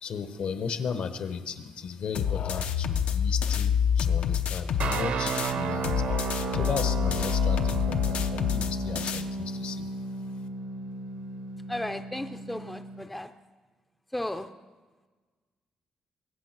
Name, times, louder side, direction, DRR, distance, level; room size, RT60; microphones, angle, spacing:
voice 1, 0.0-6.1 6.5-9.9, left 6 dB, 60° left, 9 dB, 1.1 m, -35 dB
sound 1, 2.1-5.5 5.8-9.2, left 8 dB, 75° left, 0.7 m, -27 dB
sound 2, 4.8-13.0, right 3 dB, 70° right, 0.8 m, -33 dB
voice 2, 11.7-13.3 14.1-14.5, left 1 dB, 5° left, 8 dB, 0.4 m, -34 dB
22.0 x 8.2 x 6.1 m, 1.4 s
wide cardioid pair, 175°, 2 cm